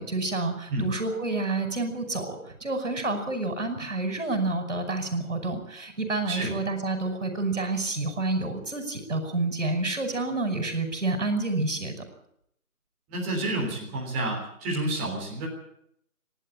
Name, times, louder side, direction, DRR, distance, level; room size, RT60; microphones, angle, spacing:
voice 1, 0.0-11.9, right 2 dB, 55° right, 7 dB, 5.8 m, -29 dB
voice 2, 13.1-15.5, right 2 dB, 10° right, -4 dB, 3.7 m, -29 dB
28.0 x 12.0 x 8.7 m, 0.73 s
figure-of-eight pair, 165°, 43 cm